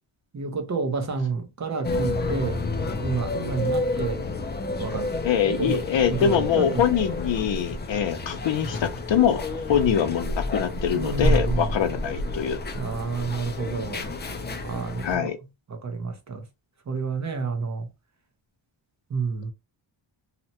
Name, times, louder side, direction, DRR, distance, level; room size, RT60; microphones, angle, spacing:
voice 1, 0.3-2.7 3.0-4.2 4.8-5.1 5.6-5.8 6.1-6.9 10.9-11.7 12.7-14.1 14.6-15.3 15.7-16.4 16.9-17.9 19.1-19.5, right 4 dB, 35° right, 0.6 m, -29 dB
sound 1, 1.8-15.2, left 2 dB, 25° left, 0.3 m, -29 dB
voice 2, 5.2-12.6 15.0-15.4, left 8 dB, 65° left, 0.7 m, -24 dB
2.8 x 2.1 x 2.8 m
wide cardioid pair, 140°, 49 cm